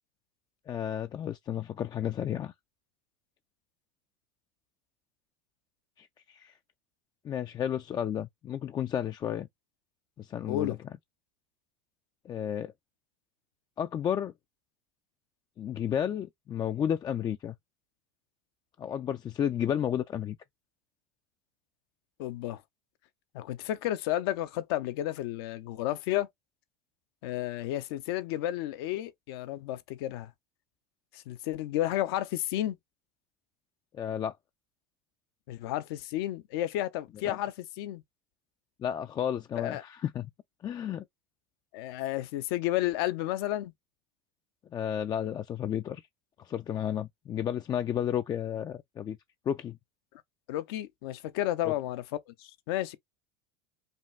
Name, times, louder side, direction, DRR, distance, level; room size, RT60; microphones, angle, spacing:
voice 1, 0.7-2.5 6.0-6.5 7.2-9.5 10.2-10.8 12.2-12.7 13.8-14.3 15.6-17.5 18.8-20.4 33.9-34.4 37.3-37.4 38.8-40.3 40.6-41.0 44.7-46.0 46.4-49.2 49.5-49.8 51.6-51.7, left 9 dB, 30° left, 0.4 m, -32 dB
voice 2, 22.2-22.6 23.3-26.3 27.2-30.3 31.1-32.8 35.5-38.0 39.6-39.8 41.7-43.7 50.5-53.0, left 14 dB, 75° left, 0.7 m, -32 dB
5.2 x 2.4 x 3.2 m
hypercardioid pair, 95°, 13 cm